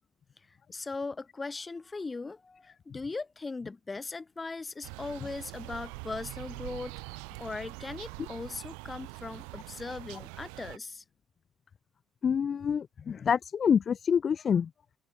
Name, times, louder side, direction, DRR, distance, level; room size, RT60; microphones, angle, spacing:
voice 1, 0.5-11.0, left 3 dB, 25° left, 7.6 m, -39 dB
sound 1, 4.8-10.8, right 38 dB, 70° right, 1.1 m, -44 dB
voice 2, 12.2-14.7, left 7 dB, 45° left, 0.4 m, -27 dB
open air
figure-of-eight pair, 45°, 0 cm